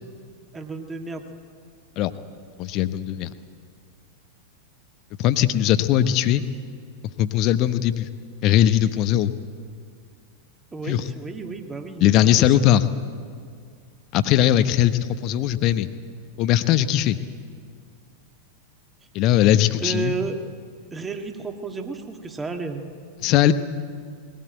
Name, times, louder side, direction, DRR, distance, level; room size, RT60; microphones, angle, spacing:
voice 1, 0.5-1.3 10.7-12.6 19.8-20.4 20.9-22.8, right 4 dB, 15° right, 5 dB, 1.9 m, -32 dB
voice 2, 2.6-3.3 5.2-6.4 7.2-8.1 8.4-9.3 10.9-11.0 12.0-12.8 14.1-15.9 16.4-17.2 19.1-20.2 23.2-23.5, left 12 dB, 40° left, 12 dB, 1.0 m, -19 dB
20.5 x 17.0 x 9.0 m, 2.2 s
figure-of-eight pair, 90°, 0 cm